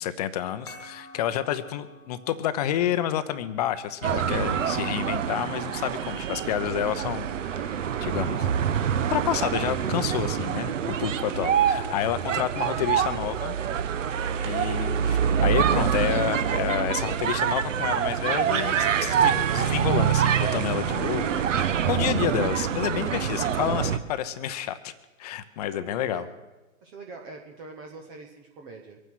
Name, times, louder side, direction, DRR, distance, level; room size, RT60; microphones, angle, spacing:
voice 1, 0.0-8.5 9.1-13.6 14.4-24.9 25.2-26.3, left 11 dB, 30° left, 12 dB, 0.7 m, -29 dB
sound 1, 0.7-5.7, left 3 dB, 10° left, 1.7 m, -50 dB
sound 2, 4.0-24.0, right 8 dB, 60° right, 1.1 m, -26 dB
voice 2, 25.6-26.3 26.8-29.0, right 3 dB, 10° right, 2 dB, 0.5 m, -44 dB
23.5 x 9.4 x 6.2 m, 1.1 s
hypercardioid pair, 140°, 42 cm